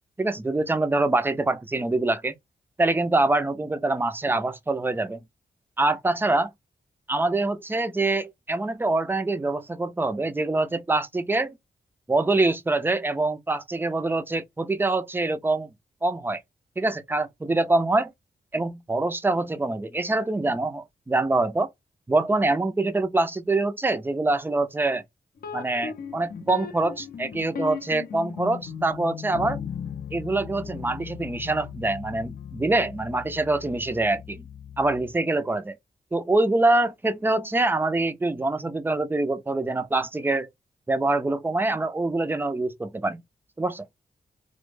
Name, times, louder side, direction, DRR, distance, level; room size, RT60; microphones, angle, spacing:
voice 1, 0.2-2.3 2.8-5.2 5.8-6.5 7.1-11.6 12.1-15.7 16.0-16.4 16.8-18.1 18.5-21.7 22.1-25.0 25.5-29.6 30.1-34.5 34.8-35.8 36.1-40.5 40.9-43.2 43.6-43.9, right 2 dB, 15° right, 0.4 m, -25 dB
sound 1, 25.4-35.2, left 7 dB, 65° left, 0.5 m, -37 dB
2.1 x 2.0 x 3.0 m
wide cardioid pair, 85°, 17 cm